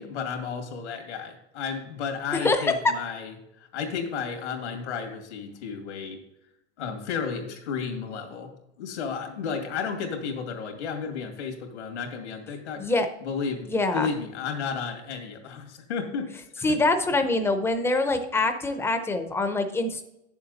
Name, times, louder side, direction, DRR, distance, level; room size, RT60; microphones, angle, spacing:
voice 1, 0.0-6.2 6.8-8.5 8.8-12.9 13.2-16.8, left 6 dB, 85° left, 4 dB, 2.3 m, -33 dB
voice 2, 2.4-2.7 12.8-13.1 13.7-14.1 16.6-20.0, left 2 dB, 5° left, 7 dB, 0.6 m, -24 dB
9.1 x 7.1 x 4.0 m, 0.85 s
supercardioid pair, 150°, 34 cm